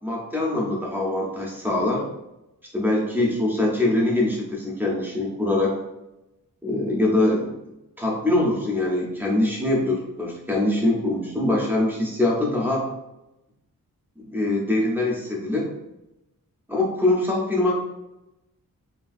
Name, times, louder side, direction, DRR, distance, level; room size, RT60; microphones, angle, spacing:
voice 1, 0.0-2.0 2.7-5.7 6.6-7.5 8.0-12.8 14.2-15.7 16.7-17.7, left 2 dB, 5° right, -3 dB, 0.5 m, -23 dB
3.2 x 2.3 x 2.4 m, 0.93 s
wide cardioid pair, 160°, 34 cm